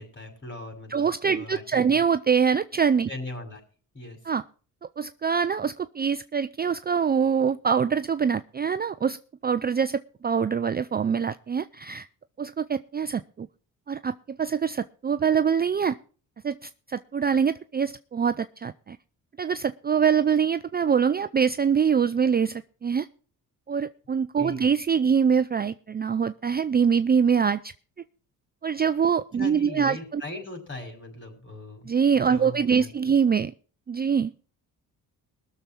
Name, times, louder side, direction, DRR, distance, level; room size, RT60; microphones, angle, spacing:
voice 1, 0.0-1.1 1.3-2.0 3.1-3.6 3.9-4.2 24.4-24.7 29.4-31.9 32.3-32.9, left 2 dB, 30° left, 4 dB, 6.2 m, -39 dB
voice 2, 0.9-3.1 4.3-4.4 5.0-9.2 9.4-12.1 12.4-13.5 13.9-16.0 16.4-19.0 19.4-23.1 23.7-27.7 28.6-30.2 31.9-33.5 33.9-34.3, right 6 dB, 25° right, 12 dB, 0.5 m, -24 dB
21.0 x 7.0 x 4.5 m, 0.40 s
cardioid pair, 80°, 38 cm